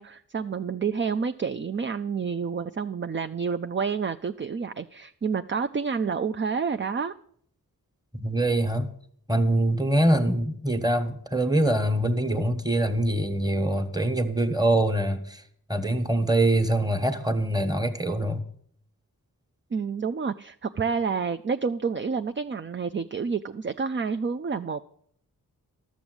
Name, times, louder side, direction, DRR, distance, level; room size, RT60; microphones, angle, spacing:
voice 1, 0.0-7.1 19.7-24.8, right 5 dB, 35° right, 0.4 m, -29 dB
voice 2, 8.1-8.9 9.3-15.4 15.7-18.4, right 1 dB, 10° right, 1.3 m, -24 dB
12.5 x 7.2 x 7.8 m
wide cardioid pair, 70°, 36 cm